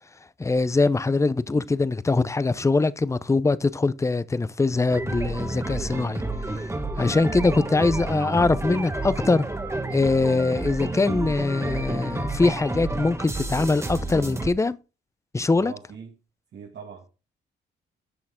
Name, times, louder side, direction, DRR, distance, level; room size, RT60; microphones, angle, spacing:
voice 1, 0.4-6.2 7.0-9.5 9.9-14.8 15.3-15.7, left 3 dB, 15° left, 0.6 m, -22 dB
sound 1, 4.9-14.5, right 2 dB, 15° right, 1.4 m, -30 dB
voice 2, 15.5-16.1 16.5-17.1, right 6 dB, 60° right, 1.8 m, -41 dB
10.5 x 6.5 x 3.6 m
cardioid pair, 90°, 20 cm